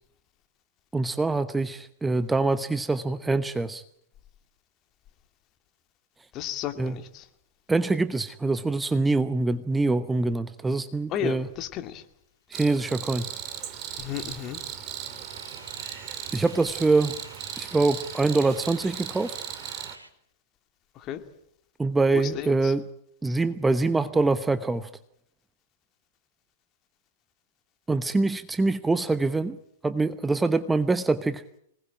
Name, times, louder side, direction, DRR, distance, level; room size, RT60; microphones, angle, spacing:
voice 1, 0.9-3.8 6.8-7.0 7.7-11.5 12.5-13.3 16.3-17.2 17.6-19.3 21.8-22.9 23.2-24.9 27.9-29.6 29.8-31.4, right 3 dB, 10° right, 13 dB, 1.0 m, -24 dB
voice 2, 6.3-7.3 11.1-12.0 14.0-14.6 21.0-21.2 22.1-22.7, left 11 dB, 35° left, 8 dB, 2.4 m, -33 dB
Cricket, 12.5-19.9, right 10 dB, 35° right, 2.8 m, -37 dB
sound 1, 13.3-20.1, right 1 dB, 90° right, 3.2 m, -49 dB
25.5 x 19.5 x 8.8 m, 0.71 s
figure-of-eight pair, 105°, 0 cm